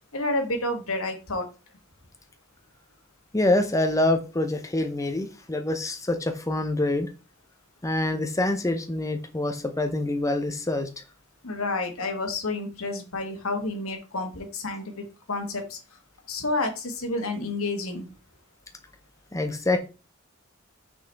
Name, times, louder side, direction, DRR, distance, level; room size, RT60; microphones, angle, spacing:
voice 1, 0.1-1.5 11.4-15.8 16.3-18.1, left 2 dB, 85° left, 1.6 m, -30 dB
voice 2, 3.3-7.1 7.8-10.9 19.3-19.8, left 2 dB, 15° left, 0.7 m, -25 dB
6.1 x 5.7 x 3.4 m
head